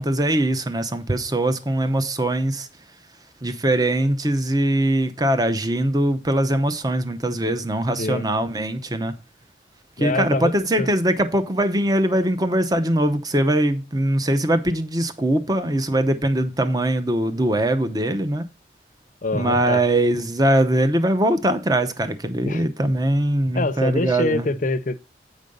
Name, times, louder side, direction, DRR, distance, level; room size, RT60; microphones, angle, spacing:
voice 1, 0.0-2.7 3.4-9.1 10.0-18.4 19.3-24.5, right 1 dB, 20° right, 0.7 m, -21 dB
voice 2, 10.0-10.5 10.8-10.9 19.2-19.8 22.4-22.6 23.5-25.0, left 2 dB, 45° left, 0.6 m, -24 dB
8.5 x 5.1 x 5.3 m
head